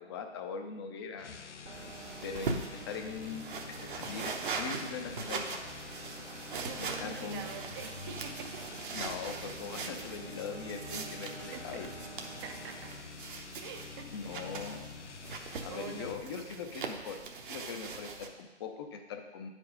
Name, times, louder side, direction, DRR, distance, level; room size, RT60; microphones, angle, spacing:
voice 1, 0.0-1.4 2.2-5.6 6.8-7.5 8.9-11.9 14.1-14.9 15.6-17.2 17.5-19.5, left 5 dB, 20° left, 5 dB, 0.6 m, -41 dB
sound 1, 1.1-16.3, left 6 dB, 90° left, 0.5 m, -48 dB
sound 2, 1.6-13.0, right 4 dB, 75° right, 1.6 m, -50 dB
sound 3, 1.7-18.3, right 4 dB, 50° right, 0.9 m, -41 dB
voice 2, 6.5-8.7 11.1-11.3 11.5-11.8 12.3-12.9 13.6-14.7 15.3-16.5, right 6 dB, 20° right, 6 dB, 0.6 m, -46 dB
9.1 x 5.0 x 5.0 m, 1.2 s
figure-of-eight pair, 125°, 34 cm